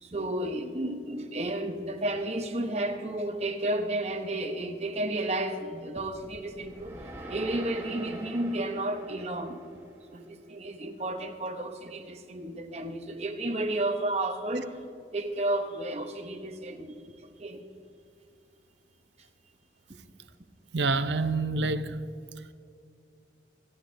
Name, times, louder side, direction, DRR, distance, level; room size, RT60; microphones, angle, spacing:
voice 1, 0.0-7.0 7.3-9.6 10.1-14.8 15.1-17.7, right 1 dB, 35° right, 1.0 m, -32 dB
sound 1, 6.0-10.3, right 1 dB, 15° right, 1.3 m, -45 dB
voice 2, 20.7-22.0, right 3 dB, 75° right, 0.6 m, -27 dB
26.0 x 10.5 x 2.7 m
head